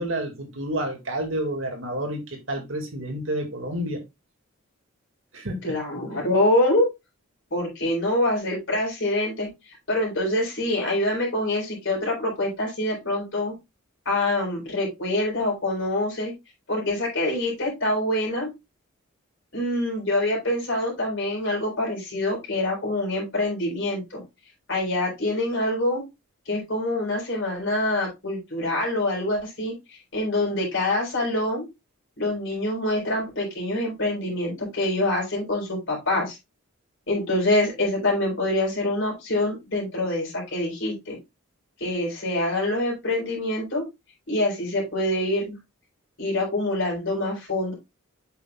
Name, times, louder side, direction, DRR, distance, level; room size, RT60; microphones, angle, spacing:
voice 1, 0.0-4.0 5.3-5.8, right 1 dB, 65° right, 2.0 m, -29 dB
voice 2, 5.6-6.9 7.5-9.5 9.9-13.5 14.1-16.3 16.7-18.5 19.5-24.2 24.7-26.0 26.5-31.7 32.2-36.4 37.1-41.2 41.8-43.8 44.3-45.6 46.2-47.7, left 1 dB, 60° left, 4.1 m, -25 dB
8.0 x 5.8 x 2.3 m
head